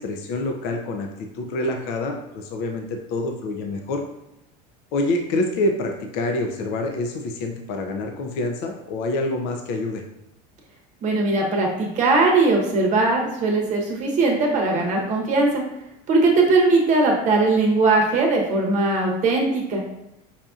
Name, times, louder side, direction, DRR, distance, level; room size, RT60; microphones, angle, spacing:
voice 1, 0.0-4.0 4.9-10.0, left 2 dB, 55° left, 3 dB, 0.5 m, -26 dB
voice 2, 11.0-15.6 16.1-19.8, right 3 dB, 40° right, 0 dB, 0.9 m, -20 dB
5.6 x 2.6 x 2.4 m, 0.90 s
supercardioid pair, 135°, 20 cm